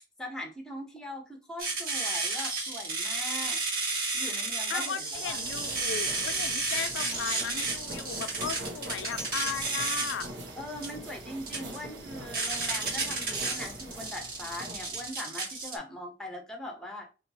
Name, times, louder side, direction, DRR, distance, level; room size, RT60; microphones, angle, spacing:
voice 1, 0.2-3.6 4.1-5.4 10.5-17.1, left 1 dB, 5° left, 0.7 m, -41 dB
sound 1, 1.6-15.8, right 3 dB, 55° right, 1.2 m, -32 dB
voice 2, 4.7-10.3, left 8 dB, 90° left, 0.3 m, -37 dB
sound 2, 5.2-15.1, right 1 dB, 75° right, 0.8 m, -44 dB
2.9 x 2.3 x 3.9 m
head